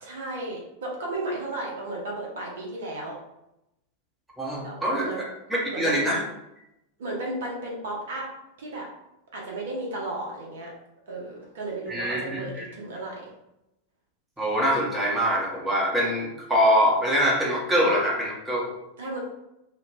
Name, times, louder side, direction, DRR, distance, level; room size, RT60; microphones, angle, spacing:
voice 1, 0.0-3.2 4.6-5.2 5.7-6.0 7.0-8.3 8.6-8.9 9.3-10.7 11.1-13.3 19.0-19.2, right 2 dB, 60° right, -2 dB, 0.7 m, -34 dB
voice 2, 4.4-5.1 5.5-6.2 11.9-12.6 14.4-18.7, equal, 5° right, -5 dB, 0.8 m, -24 dB
2.5 x 2.2 x 3.0 m, 0.87 s
figure-of-eight pair, 90°, 0 cm